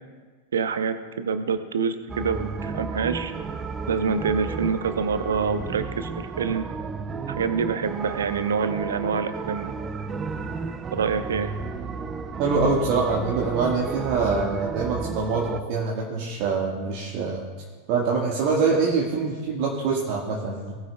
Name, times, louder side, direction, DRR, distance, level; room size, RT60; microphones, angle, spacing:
voice 1, 0.5-3.3 3.9-6.6 7.3-9.7 10.9-11.5, right 5 dB, 65° right, 10 dB, 0.8 m, -26 dB
sound 1, 2.1-15.6, right 4 dB, 20° right, 0.5 m, -33 dB
voice 2, 12.4-17.4 17.9-20.8, right 4 dB, 45° right, -3 dB, 1.6 m, -24 dB
19.5 x 9.0 x 2.3 m, 1.5 s
figure-of-eight pair, 90°, 0 cm